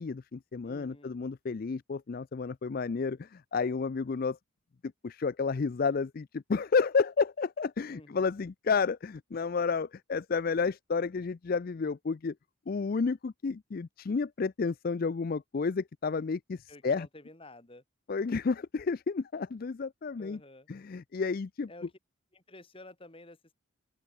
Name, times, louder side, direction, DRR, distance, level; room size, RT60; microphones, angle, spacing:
voice 1, 0.0-4.4 4.8-12.3 12.7-17.1 18.1-20.4 20.7-21.7, left 5 dB, 45° left, 0.4 m, -31 dB
voice 2, 0.6-1.2 7.9-8.3 16.7-17.8 20.2-20.7 21.7-21.9 22.3-23.5, left 1 dB, 25° left, 2.4 m, -51 dB
open air
head